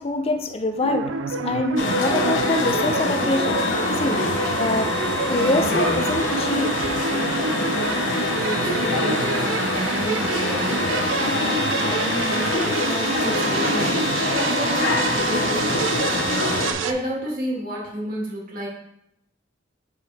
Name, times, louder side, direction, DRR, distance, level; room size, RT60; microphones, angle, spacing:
voice 1, 0.0-4.2 4.6-4.9 5.3-6.9, left 2 dB, 30° left, 0.5 m, -25 dB
sound 1, 0.8-16.9, right 5 dB, 85° right, 0.4 m, -27 dB
sound 2, 1.8-16.7, left 3 dB, 85° left, 0.8 m, -24 dB
voice 2, 7.7-18.7, right 1 dB, 50° right, 1.9 m, -32 dB
6.3 x 5.0 x 3.4 m
head